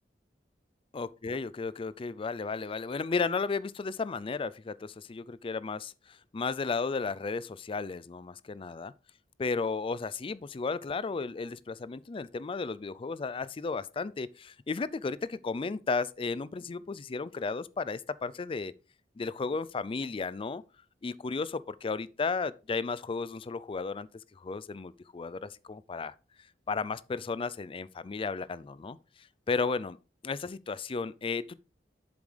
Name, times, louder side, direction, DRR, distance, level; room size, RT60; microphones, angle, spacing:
voice 1, 0.9-8.9 9.4-18.7 19.2-20.6 21.0-26.1 26.7-30.0 30.2-31.6, left 4 dB, 30° left, 0.4 m, -34 dB
7.7 x 7.1 x 3.3 m
head